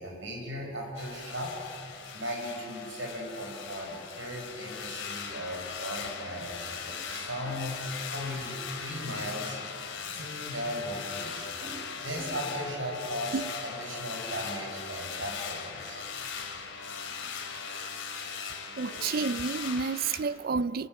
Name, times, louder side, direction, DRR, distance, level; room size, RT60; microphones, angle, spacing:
voice 1, 0.0-1.6 2.1-7.8 8.1-9.6 10.1-16.1 18.9-19.1, equal, 80° right, 5.0 m, -37 dB
sound 1, 0.9-20.2, left 6 dB, 75° left, 2.9 m, -39 dB
voice 2, 18.8-20.9, right 5 dB, 50° right, 0.4 m, -30 dB
27.5 x 18.5 x 7.6 m
head